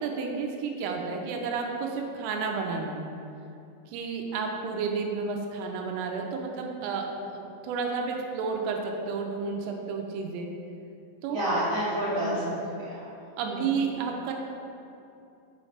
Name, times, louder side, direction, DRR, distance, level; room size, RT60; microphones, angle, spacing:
voice 1, 0.0-3.1 3.9-10.5 11.2-11.4 12.1-12.5 13.4-14.3, right 5 dB, 85° right, 2 dB, 3.2 m, -31 dB
voice 2, 11.3-13.0 13.4-13.7, equal, 65° right, -10 dB, 1.9 m, -29 dB
7.0 x 6.4 x 3.2 m, 2.7 s
omnidirectional pair, 5.8 m